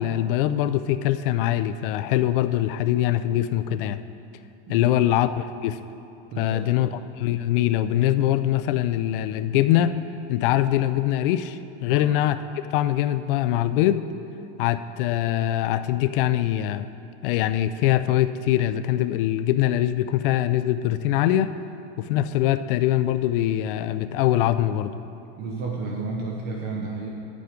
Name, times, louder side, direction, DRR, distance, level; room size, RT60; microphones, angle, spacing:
voice 1, 0.0-4.0 4.7-5.8 6.4-10.0 10.3-12.4 12.7-14.1 14.6-16.9 17.2-21.6 22.0-24.9, left 13 dB, 55° left, 11 dB, 0.5 m, -23 dB
voice 2, 6.3-6.9 11.9-12.2 25.4-27.1, right 3 dB, 30° right, 0 dB, 0.8 m, -32 dB
9.4 x 8.5 x 5.1 m, 2.9 s
supercardioid pair, 165°, 32 cm